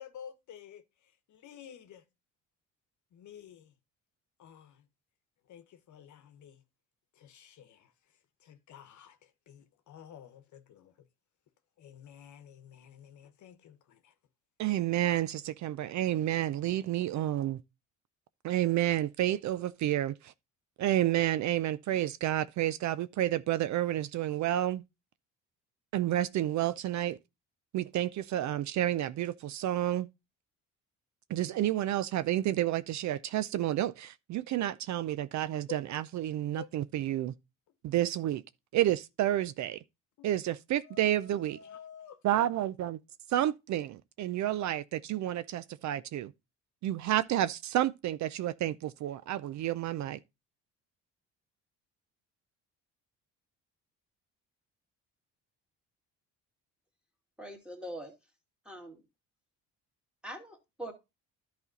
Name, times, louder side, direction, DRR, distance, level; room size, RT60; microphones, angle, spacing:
voice 1, 0.0-2.0 3.1-3.7 4.4-4.8 5.5-6.6 7.2-7.9 8.4-11.1 11.8-14.1 35.7-35.8 36.5-36.7 40.2-40.3 40.8-42.2, left 8 dB, 60° left, 1.1 m, -51 dB
voice 2, 14.6-17.6 18.4-20.3 20.8-24.8 25.9-27.2 27.7-30.1 31.3-37.3 37.8-38.4 38.7-39.8 40.2-41.6 42.2-43.0 43.3-46.3 46.8-50.2, right 13 dB, 60° right, 0.5 m, -30 dB
voice 3, 57.4-58.1 58.7-59.0 60.2-60.9, right 1 dB, 5° right, 2.1 m, -42 dB
11.0 x 4.2 x 3.9 m
cardioid pair, 90°, 33 cm